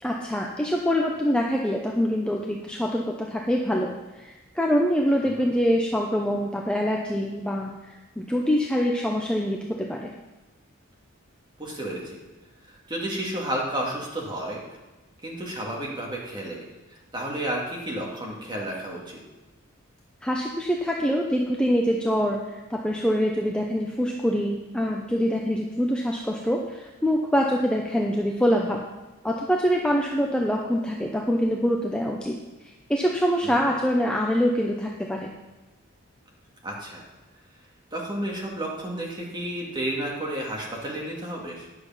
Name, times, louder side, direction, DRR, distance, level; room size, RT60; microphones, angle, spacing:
voice 1, 0.0-10.1 20.2-28.8 29.2-32.4 32.9-35.3, equal, 5° left, -1 dB, 0.6 m, -25 dB
voice 2, 11.6-12.2 12.6-14.6 15.2-16.6 17.1-19.2 33.4-33.7 36.6-37.0 37.9-41.7, right 1 dB, 20° right, -2 dB, 1.9 m, -32 dB
10.0 x 6.5 x 5.6 m, 1.1 s
head